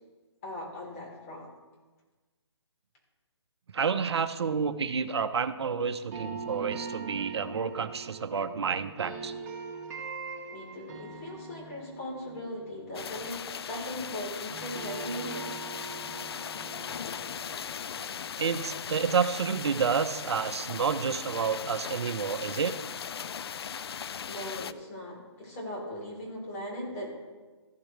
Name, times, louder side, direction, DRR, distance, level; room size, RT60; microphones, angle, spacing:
voice 1, 0.4-1.5 10.5-15.6 24.3-27.1, left 1 dB, 30° left, -3 dB, 3.7 m, -39 dB
voice 2, 3.7-9.3 18.4-22.8, right 6 dB, 65° right, 11 dB, 0.8 m, -29 dB
sound 1, 6.1-14.2 14.5-19.4, right 5 dB, 35° right, 2.1 m, -43 dB
sound 2, 12.9-24.7, left 7 dB, 60° left, 0.4 m, -38 dB
14.5 x 8.5 x 3.3 m, 1.3 s
hypercardioid pair, 155°, 15 cm